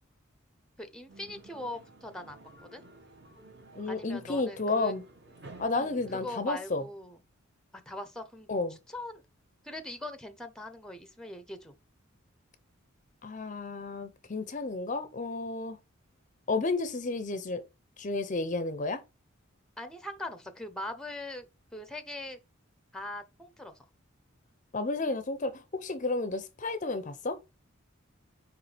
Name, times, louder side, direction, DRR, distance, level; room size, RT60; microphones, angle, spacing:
voice 1, 0.8-2.8 3.9-4.9 5.7-7.2 7.7-8.5 8.9-9.2 9.6-11.7 19.8-21.5 21.7-22.4 22.9-23.8, left 1 dB, 5° left, 0.8 m, -41 dB
sound 1, 1.1-6.4, right 2 dB, 55° right, 2.5 m, -52 dB
voice 2, 3.7-5.0 5.6-6.8 8.5-8.8 13.2-15.8 16.5-17.6 18.0-19.0 24.7-27.4, left 3 dB, 35° left, 0.6 m, -32 dB
9.3 x 3.2 x 3.4 m
head